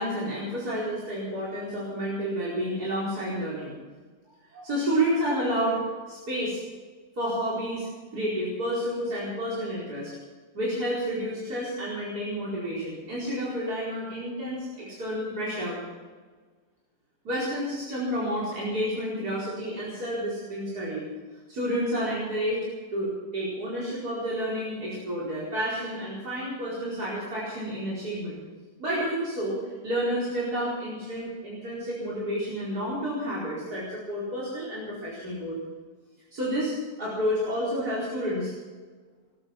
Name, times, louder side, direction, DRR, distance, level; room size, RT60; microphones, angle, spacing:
voice 1, 0.0-3.8 4.5-5.8 6.1-6.6 7.2-7.9 8.1-10.1 10.5-15.8 17.3-21.1 21.5-22.6 22.9-28.4 28.8-35.6 36.3-36.7 37.0-38.5, equal, 80° right, -8 dB, 5.3 m, -30 dB
19.0 x 11.5 x 6.1 m, 1.4 s
omnidirectional pair, 1.6 m